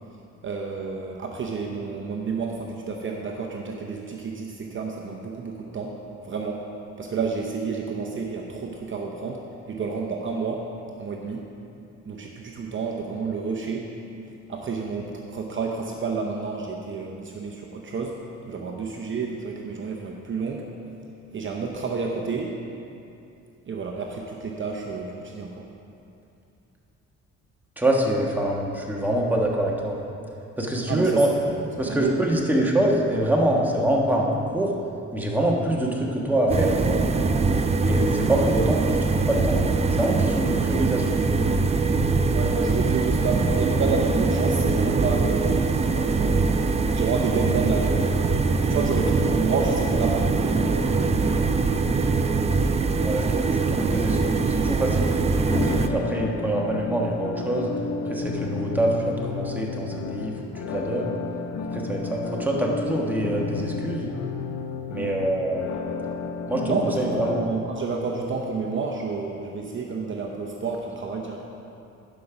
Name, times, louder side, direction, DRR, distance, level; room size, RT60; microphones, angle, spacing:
voice 1, 0.4-6.6 7.0-10.7 11.0-11.5 12.1-13.9 14.5-18.2 18.5-20.7 21.3-22.6 23.6-25.7 30.9-32.3 42.3-46.5 46.9-48.2 48.6-51.5 64.9-65.1 66.6-71.5, right 4 dB, 40° right, 0 dB, 0.8 m, -30 dB
voice 2, 27.8-30.0 30.6-31.3 31.8-34.7 35.1-37.0 37.8-39.6 39.9-41.1 53.0-57.7 58.1-61.1 61.7-64.1 64.9-65.7 66.5-67.4, right 1 dB, 5° right, -2 dB, 1.3 m, -25 dB
sound 1, 36.5-55.9, right 4 dB, 20° right, 0.4 m, -22 dB
sound 2, 55.5-67.5, left 4 dB, 70° left, 0.7 m, -32 dB
11.5 x 5.4 x 5.0 m, 2.7 s
cardioid pair, 90°, 30 cm